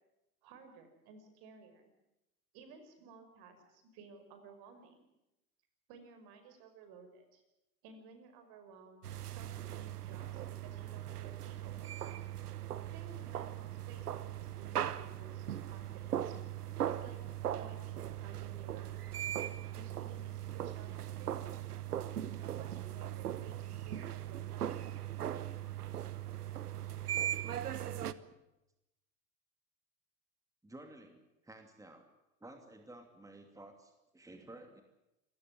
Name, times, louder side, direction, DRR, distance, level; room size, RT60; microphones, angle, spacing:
voice 1, 0.4-1.9 2.5-5.1 5.9-7.4 7.8-12.0 12.9-16.3 16.8-17.2 17.6-19.0 19.7-20.9 21.2-21.8 22.6-24.9, right 4 dB, 55° right, 7 dB, 5.8 m, -56 dB
sound 1, 9.0-28.1, right 11 dB, 85° right, 1.1 m, -39 dB
voice 2, 30.6-32.1 32.4-34.8, right 2 dB, 5° right, 6 dB, 2.6 m, -54 dB
27.5 x 15.0 x 9.4 m, 0.93 s
hypercardioid pair, 80°, 45 cm